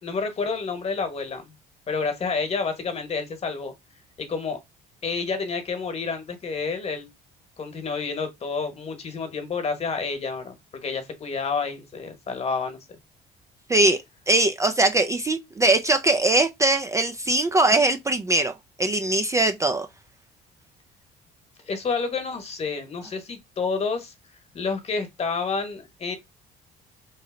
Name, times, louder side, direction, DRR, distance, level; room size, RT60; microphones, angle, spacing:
voice 1, 0.0-1.5 1.9-3.7 4.2-4.6 5.0-7.1 7.6-12.8 21.7-24.1 24.5-26.1, left 4 dB, 40° left, 1.2 m, -29 dB
voice 2, 14.3-18.5 18.8-19.9, right 2 dB, 20° right, 0.4 m, -21 dB
3.1 x 2.7 x 3.7 m
cardioid pair, 110°, 17 cm